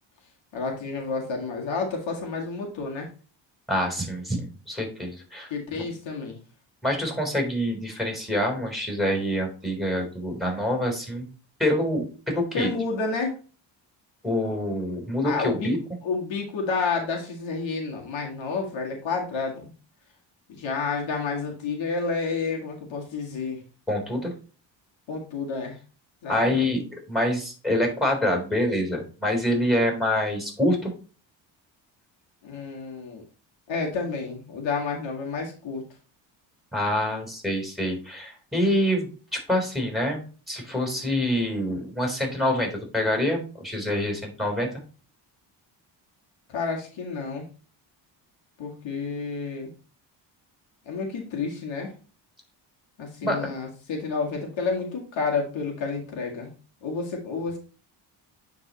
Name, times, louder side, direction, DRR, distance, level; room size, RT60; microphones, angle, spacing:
voice 1, 0.5-3.1 5.5-6.4 12.5-13.4 15.2-15.7 16.0-19.7 20.5-23.6 25.1-25.7 26.2-26.7 32.4-33.2 33.7-35.8 46.5-47.5 48.6-49.7 50.9-51.9 53.0-56.5 56.8-57.6, left 4 dB, 70° left, 0 dB, 2.1 m, -30 dB
voice 2, 3.7-5.5 5.8-5.9 6.8-11.3 11.6-12.7 14.2-15.8 23.9-24.3 26.3-30.9 36.7-44.7 53.2-53.5, left 1 dB, ahead, 1 dB, 3.8 m, -26 dB
9.6 x 4.0 x 3.0 m, 0.36 s
cardioid pair, 75°, 47 cm